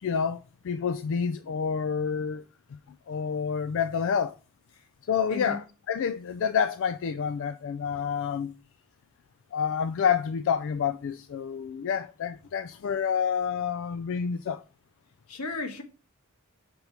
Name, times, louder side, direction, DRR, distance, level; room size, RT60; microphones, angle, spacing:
voice 1, 0.0-2.4 3.1-4.4 5.1-8.5 9.5-14.6, left 7 dB, 60° left, 0.3 m, -28 dB
voice 2, 5.3-5.6 15.3-15.8, left 3 dB, 85° left, 1.4 m, -34 dB
5.3 x 4.6 x 5.6 m
head